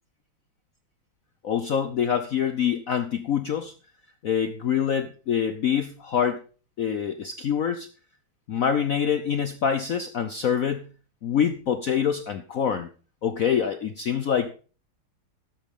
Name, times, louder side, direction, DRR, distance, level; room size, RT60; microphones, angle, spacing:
voice 1, 1.4-3.7 4.2-6.4 6.8-7.9 8.5-10.9 11.2-12.9 13.2-14.5, left 8 dB, 75° left, 9 dB, 0.7 m, -25 dB
13.0 x 10.5 x 3.6 m, 0.37 s
omnidirectional pair, 2.4 m